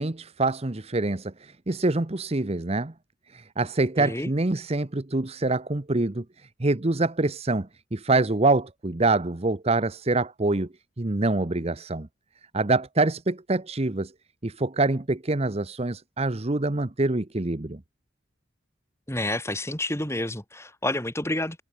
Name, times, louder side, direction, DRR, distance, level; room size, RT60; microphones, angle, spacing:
voice 1, 0.0-2.9 3.3-10.7 11.0-12.1 12.5-14.1 14.4-17.8, right 2 dB, 30° right, 0.9 m, -25 dB
voice 2, 4.0-4.3 19.1-21.6, left 1 dB, 15° left, 4.1 m, -29 dB
head